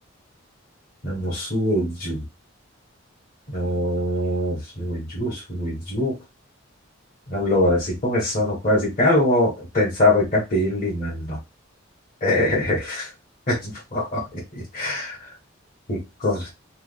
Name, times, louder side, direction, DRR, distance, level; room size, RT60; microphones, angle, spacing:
voice 1, 1.0-2.2 3.5-6.1 7.3-11.4 12.2-13.1 13.5-14.4 14.7-15.2 15.9-16.5, left 1 dB, 40° left, -6 dB, 1.4 m, -23 dB
3.4 x 2.2 x 3.3 m, 0.23 s
head